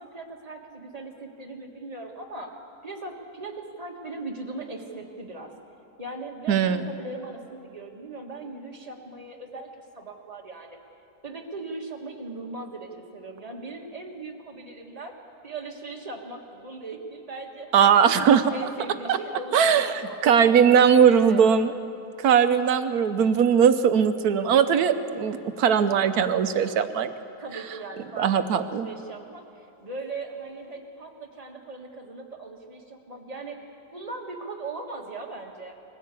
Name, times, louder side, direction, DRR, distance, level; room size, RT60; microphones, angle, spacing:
voice 1, 0.0-2.6 2.8-5.5 6.0-10.8 11.2-15.1 15.4-18.2 18.5-21.4 27.4-35.7, right 3 dB, 25° right, 1 dB, 1.8 m, -39 dB
voice 2, 6.5-6.8 17.7-18.6 19.1-19.2 19.5-19.9 20.2-21.7 22.2-27.1 28.2-28.9, right 7 dB, 75° right, 11 dB, 1.3 m, -19 dB
21.0 x 15.0 x 8.3 m, 2.8 s
omnidirectional pair, 1.7 m